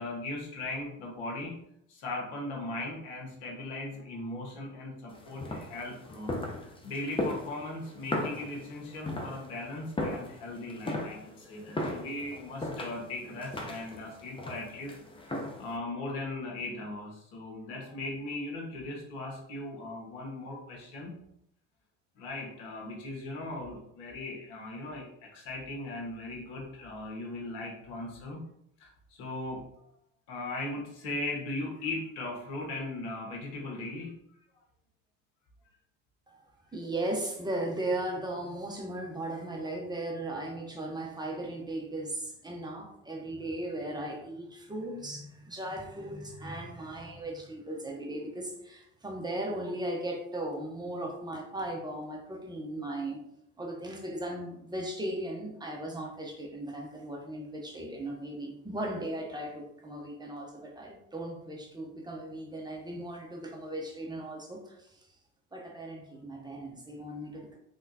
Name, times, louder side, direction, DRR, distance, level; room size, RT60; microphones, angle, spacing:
voice 1, 0.0-1.6 1.9-14.9 15.2-21.1 22.2-28.4 28.8-29.9 30.3-34.1, left 2 dB, 75° left, -1 dB, 1.5 m, -38 dB
sound 1, 5.1-15.8, left 1 dB, 15° left, 0.8 m, -37 dB
voice 2, 36.7-53.2 53.6-65.1 65.5-67.6, right 1 dB, 10° right, 0 dB, 1.0 m, -37 dB
3.5 x 3.5 x 2.8 m, 0.74 s
hypercardioid pair, 80°, 37 cm